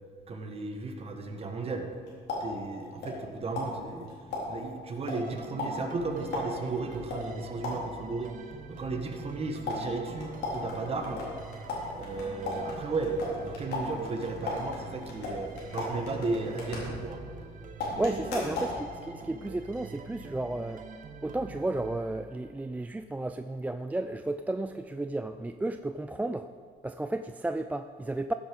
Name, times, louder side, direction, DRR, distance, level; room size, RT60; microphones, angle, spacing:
voice 1, 0.3-1.9 2.4-4.1 4.5-8.3 8.7-11.2 11.9-17.2 17.9-18.5, right 3 dB, 35° right, 4 dB, 1.5 m, -34 dB
sound 1, 1.8-3.3 3.6-8.1 9.6-17.4 17.8-18.8, left 3 dB, 80° left, 3.7 m, -37 dB
sound 2, 5.1-22.7, right 4 dB, 50° right, 1.3 m, -46 dB
voice 2, 18.0-20.8 21.2-26.5 26.8-28.3, right 2 dB, 10° right, 8 dB, 0.3 m, -33 dB
15.0 x 7.9 x 5.3 m, 2.1 s
cardioid pair, 110°, 17 cm